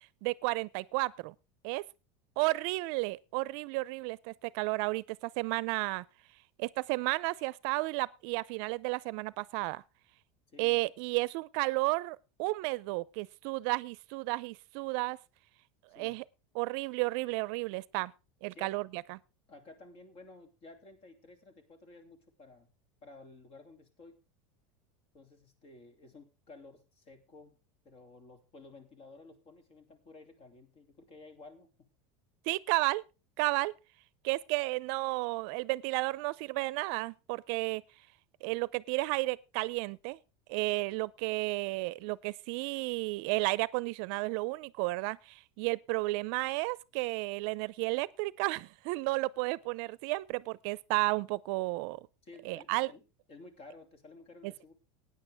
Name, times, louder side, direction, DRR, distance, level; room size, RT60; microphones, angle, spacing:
voice 1, 0.2-1.3 1.6-1.8 2.4-6.0 6.6-9.8 10.6-15.2 15.9-16.2 16.5-18.1 18.4-19.2 32.5-33.0 33.4-33.7 34.2-37.8 38.4-40.2 40.5-52.0 52.4-52.9 54.4-54.5, right 23 dB, 60° right, 0.6 m, -32 dB
voice 2, 10.5-10.9 15.9-16.2 18.5-18.7 19.5-22.7 23.0-24.2 25.1-31.9 52.2-53.0 53.3-54.7, left 3 dB, 45° left, 2.7 m, -54 dB
16.0 x 9.6 x 3.5 m
supercardioid pair, 135°, 15 cm